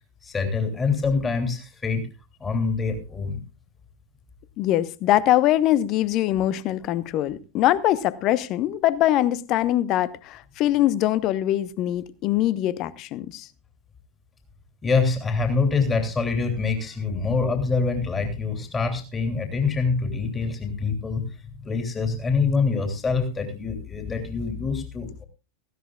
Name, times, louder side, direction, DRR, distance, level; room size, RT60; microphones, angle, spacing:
voice 1, 0.2-2.1 2.4-3.4 14.8-21.3 21.6-25.3, left 4 dB, 15° left, 3.1 m, -25 dB
voice 2, 4.6-13.5, left 13 dB, 40° left, 1.0 m, -23 dB
18.0 x 16.0 x 2.4 m
figure-of-eight pair, 90°, 0 cm